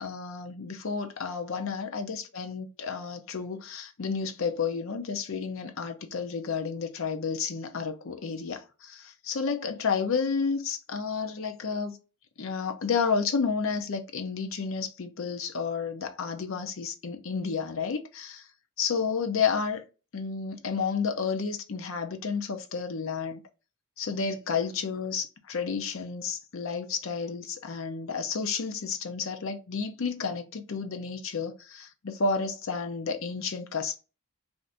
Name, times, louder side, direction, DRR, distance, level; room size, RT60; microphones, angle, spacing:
voice 1, 0.0-12.0 12.4-18.4 18.8-19.8 20.1-23.4 24.0-34.0, left 5 dB, 65° left, 0.5 m, -31 dB
2.6 x 2.5 x 3.4 m
head